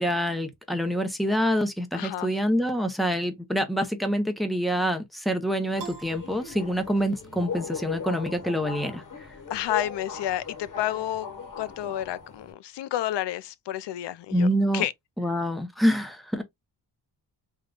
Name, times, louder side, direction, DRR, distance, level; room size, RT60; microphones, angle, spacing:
voice 1, 0.0-9.0 14.3-14.8 15.2-16.4, equal, ahead, 0.6 m, -26 dB
voice 2, 1.9-2.3 9.5-11.3 11.6-14.5 14.7-14.9, left 12 dB, 70° left, 0.5 m, -30 dB
Subway metro underground, 5.7-12.5, left 6 dB, 45° left, 1.0 m, -38 dB
Piano, 5.8-7.3, right 6 dB, 45° right, 0.8 m, -44 dB
3.7 x 2.2 x 3.6 m
wide cardioid pair, 155°, 44 cm